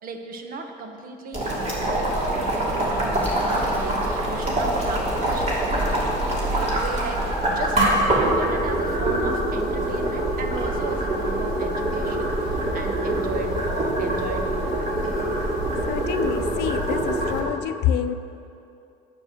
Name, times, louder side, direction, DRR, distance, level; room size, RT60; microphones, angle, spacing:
voice 1, 0.0-15.1, right 4 dB, 55° right, 5 dB, 1.2 m, -36 dB
Boiling, 1.3-17.4, right 1 dB, 40° right, 3.0 m, -24 dB
Explosion, 3.1-4.3, left 2 dB, 10° left, 0.7 m, -36 dB
voice 2, 15.9-18.1, left 10 dB, 80° left, 11 dB, 0.6 m, -27 dB
9.7 x 8.4 x 6.7 m, 2.6 s
cardioid pair, 110°, 17 cm